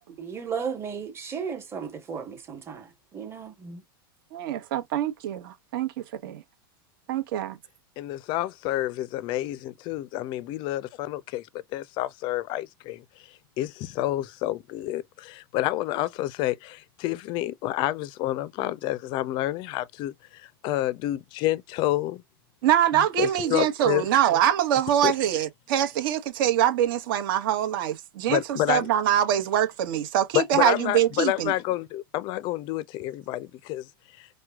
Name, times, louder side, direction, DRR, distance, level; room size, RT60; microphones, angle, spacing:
voice 1, 0.2-2.9 3.1-3.8, right 6 dB, 20° right, 1.1 m, -34 dB
voice 2, 4.3-5.9 6.2-6.4 7.1-7.5 22.6-31.5, right 11 dB, 65° right, 1.0 m, -24 dB
voice 3, 8.0-11.5 11.7-22.2 22.9-24.1 25.0-25.1 28.3-28.9 30.3-33.9 34.2-34.3, left 15 dB, 40° left, 0.4 m, -29 dB
4.4 x 2.2 x 2.3 m
hypercardioid pair, 125°, 12 cm